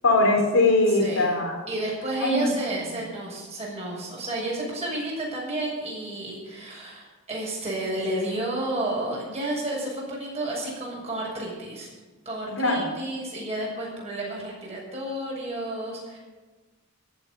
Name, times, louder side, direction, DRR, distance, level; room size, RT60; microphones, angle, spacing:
voice 1, 0.0-1.6 2.2-2.5 12.6-12.9, left 2 dB, 75° left, 0 dB, 4.0 m, -21 dB
voice 2, 1.0-1.4 1.7-11.9 12.2-16.2, right 1 dB, 30° right, -4 dB, 6.4 m, -31 dB
15.0 x 7.9 x 10.0 m, 1.3 s
head